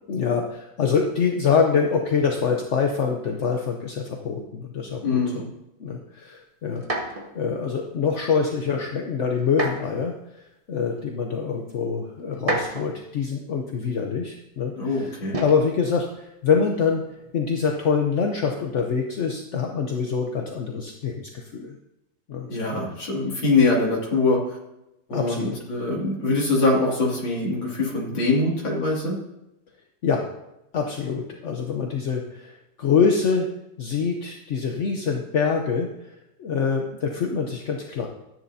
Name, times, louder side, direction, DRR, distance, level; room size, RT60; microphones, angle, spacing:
voice 1, 0.1-5.4 5.8-17.0 17.3-21.8 22.3-22.5 25.1-25.6 30.0-30.2 30.7-32.5 32.8-33.5 33.8-35.9 36.4-38.1, left 6 dB, 55° left, 2 dB, 0.8 m, -25 dB
voice 2, 5.0-5.5 14.8-15.4 22.5-24.6 25.1-29.2, left 3 dB, 85° left, -4 dB, 3.3 m, -23 dB
sound 1, 6.8-7.3 9.5-10.0 11.0-11.1 12.3-13.1 15.3-15.7 16.9-17.3, right 1 dB, 25° right, 0.8 m, -29 dB
13.5 x 10.0 x 2.7 m, 0.90 s
omnidirectional pair, 2.1 m